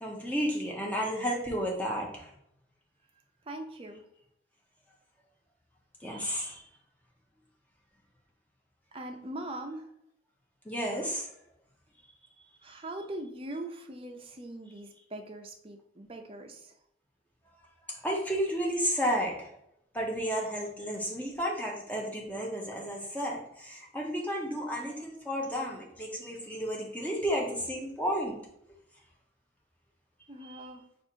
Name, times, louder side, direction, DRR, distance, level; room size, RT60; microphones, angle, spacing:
voice 1, 0.0-2.3 6.0-6.6 10.6-11.3 17.9-19.5 19.9-28.4 30.4-30.7, equal, 10° left, -2 dB, 0.9 m, -32 dB
voice 2, 3.5-4.0 8.9-9.9 12.6-16.7 30.3-30.8, right 1 dB, 30° right, 4 dB, 0.5 m, -41 dB
4.4 x 2.5 x 4.5 m, 0.76 s
head